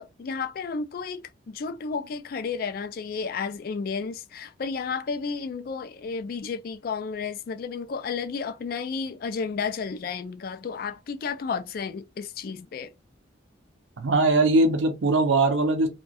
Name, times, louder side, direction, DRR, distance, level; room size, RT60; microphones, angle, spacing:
voice 1, 0.0-12.9, left 5 dB, 50° left, 0.3 m, -32 dB
voice 2, 14.0-15.9, right 2 dB, 90° right, 0.6 m, -21 dB
2.3 x 2.1 x 2.6 m
head